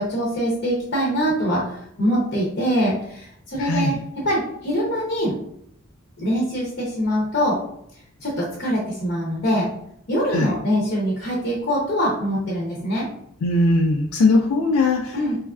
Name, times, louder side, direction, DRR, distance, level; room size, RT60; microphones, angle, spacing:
voice 1, 0.0-5.3 6.2-7.6 8.2-9.7 10.1-13.0 15.1-15.4, equal, 45° left, -4 dB, 0.6 m, -23 dB
voice 2, 3.6-4.0 10.3-10.5 13.4-15.2, left 2 dB, 80° left, 1 dB, 0.3 m, -19 dB
3.0 x 2.3 x 2.3 m, 0.72 s
head